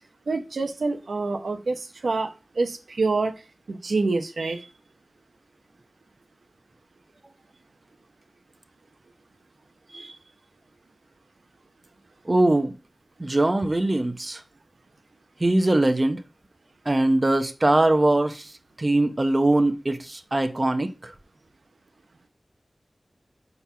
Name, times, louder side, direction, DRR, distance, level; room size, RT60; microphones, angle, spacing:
voice 1, 0.3-3.3 3.7-4.7 9.9-10.2, right 3 dB, 85° right, 0.9 m, -27 dB
voice 2, 12.2-12.7 13.2-14.4 15.4-16.2 16.8-21.1, right 1 dB, 35° right, 0.9 m, -22 dB
5.4 x 4.7 x 5.7 m
cardioid pair, 45°, 0 cm